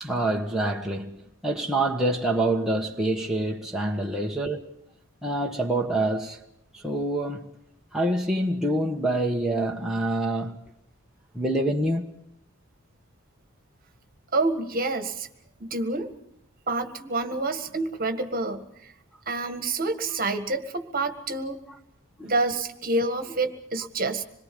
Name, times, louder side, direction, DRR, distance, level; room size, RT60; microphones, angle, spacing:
voice 1, 0.0-4.6 5.2-6.4 6.7-7.5 7.9-10.6 11.3-12.1 21.7-21.8 22.2-22.3, right 1 dB, ahead, 1.3 m, -26 dB
voice 2, 14.3-15.3 15.6-16.1 16.7-18.9 19.3-21.6 22.2-24.2, right 2 dB, 45° right, 1.7 m, -28 dB
26.5 x 22.0 x 5.4 m
head